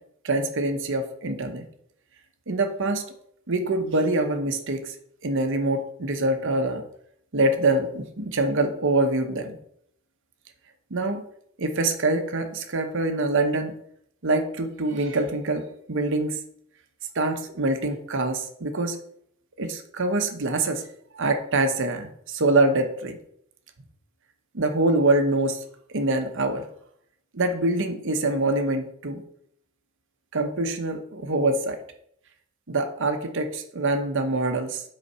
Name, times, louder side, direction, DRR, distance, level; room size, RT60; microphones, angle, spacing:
voice 1, 0.2-1.6 2.5-3.0 3.5-4.9 5.2-6.8 7.3-9.6 10.9-11.2 11.6-13.7 14.2-16.4 17.1-19.0 19.6-20.9 21.1-23.2 24.5-25.6 25.9-26.7 27.3-29.2 30.3-31.8 32.7-34.8, right 2 dB, 60° right, 6 dB, 0.9 m, -25 dB
8.1 x 4.2 x 5.5 m, 0.71 s
head